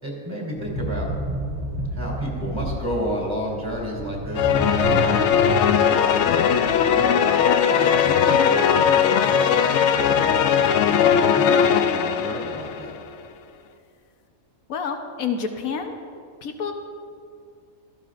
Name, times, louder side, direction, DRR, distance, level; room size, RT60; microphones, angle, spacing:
voice 1, 0.0-1.1 1.9-7.2 7.7-12.9, equal, 20° right, -5 dB, 3.0 m, -32 dB
sound 1, 0.6-8.0 8.2-8.5, equal, 65° right, 2.1 m, -31 dB
sound 2, 4.3-12.9, left 8 dB, 65° left, 0.8 m, -19 dB
voice 2, 14.7-15.9 16.4-16.7, left 6 dB, 85° left, 5 dB, 1.4 m, -28 dB
16.5 x 14.0 x 2.5 m, 2.4 s
omnidirectional pair, 1.4 m